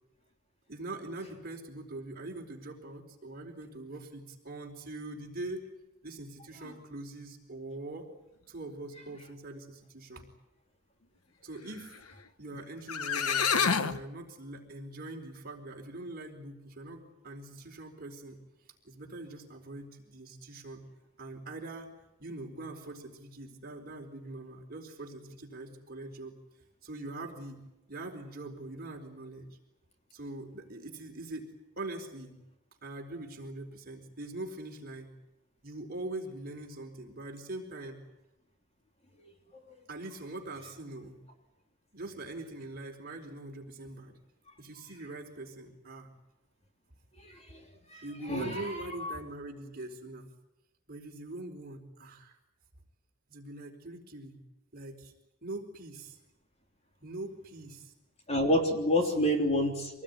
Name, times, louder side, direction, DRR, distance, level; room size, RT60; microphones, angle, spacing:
voice 1, 0.7-5.7 6.0-8.1 8.5-10.3 11.4-12.0 12.4-18.4 18.8-20.8 21.2-21.9 22.2-26.3 26.8-27.6 27.9-29.5 30.1-31.5 31.8-32.3 32.8-35.1 35.6-38.0 39.9-41.2 41.9-44.1 44.6-46.1 48.0-50.3 50.9-52.4 53.3-54.4 54.7-55.1 55.4-56.2 57.0-57.9 59.1-59.3, right 2 dB, 45° right, 2 dB, 4.3 m, -42 dB
sound 1, 12.6-12.7 12.9-14.0, left 6 dB, 85° left, 1.2 m, -27 dB
voice 2, 47.2-47.6 47.9-48.0 48.3-48.6 49.0-49.2 58.3-60.0, left 1 dB, 30° left, 3 dB, 3.2 m, -28 dB
26.0 x 19.5 x 9.7 m, 0.93 s
head